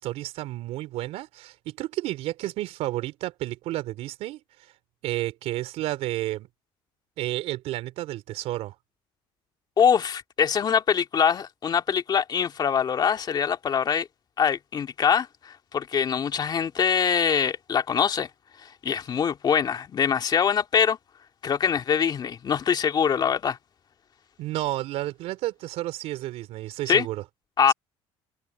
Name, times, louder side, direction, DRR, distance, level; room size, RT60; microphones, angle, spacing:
voice 1, 0.0-4.7 5.0-6.5 7.2-8.8 24.4-27.2 27.7-27.8, right 16 dB, 70° right, 3.5 m, -31 dB
voice 2, 9.8-14.1 14.4-18.3 18.6-21.0 21.4-23.6 26.9-27.1 27.6-27.7, left 7 dB, 40° left, 2.2 m, -23 dB
supercardioid pair, 100°, 11 cm